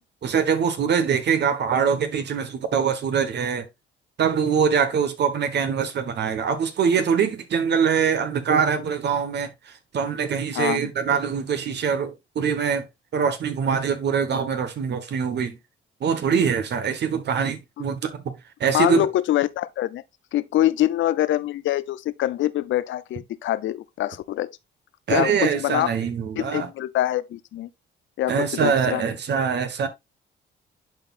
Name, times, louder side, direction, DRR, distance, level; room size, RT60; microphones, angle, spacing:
voice 1, 0.2-3.6 4.2-9.5 9.9-12.8 13.1-15.6 16.0-18.2 18.6-19.1 25.1-26.7 28.3-29.9, right 6 dB, 60° right, 1.4 m, -23 dB
voice 2, 10.5-10.9 18.7-20.0 20.3-24.5 25.1-25.9 26.4-27.7 28.2-29.0, left 13 dB, 75° left, 0.6 m, -24 dB
11.5 x 4.3 x 2.5 m
cardioid pair, 90°, 20 cm